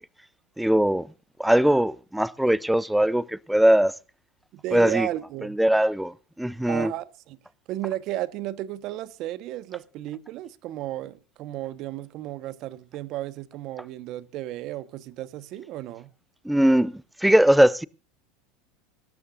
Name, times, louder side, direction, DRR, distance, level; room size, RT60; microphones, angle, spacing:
voice 1, 0.6-1.1 1.4-3.9 4.7-5.1 5.6-6.9 16.5-16.9 17.2-17.8, right 1 dB, 5° right, 0.6 m, -20 dB
voice 2, 4.5-5.6 6.7-7.4 7.7-16.1, right 14 dB, 55° right, 1.2 m, -34 dB
24.0 x 12.5 x 2.6 m
supercardioid pair, 105°, 0 cm